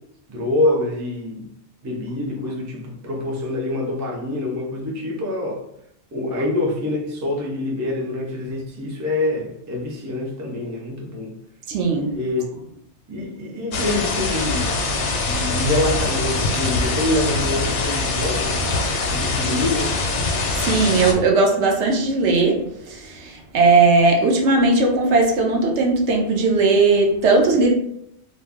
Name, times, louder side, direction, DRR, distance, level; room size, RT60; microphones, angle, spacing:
voice 1, 0.3-1.5 1.8-5.6 6.1-11.3 12.1-12.6 13.1-14.7 15.2-18.5 19.1-20.0, left 2 dB, 30° right, -1 dB, 0.3 m, -25 dB
voice 2, 11.7-12.1 20.5-27.7, right 3 dB, 80° right, 1 dB, 0.9 m, -18 dB
sound 1, 13.7-21.1, left 3 dB, 85° left, 0.9 m, -23 dB
2.5 x 2.0 x 3.4 m, 0.74 s
omnidirectional pair, 1.2 m